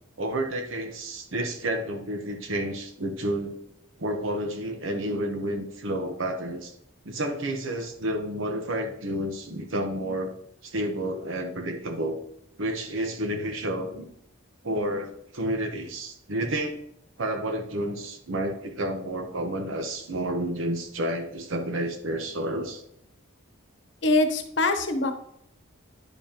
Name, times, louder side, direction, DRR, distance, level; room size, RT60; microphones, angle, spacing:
voice 1, 0.2-3.5 4.0-6.7 7.0-12.2 12.6-14.1 14.6-16.8 17.2-22.8, right 1 dB, 75° right, 4 dB, 1.0 m, -30 dB
voice 2, 24.0-25.1, left 2 dB, 60° left, 6 dB, 1.0 m, -23 dB
10.0 x 5.4 x 2.9 m, 0.73 s
head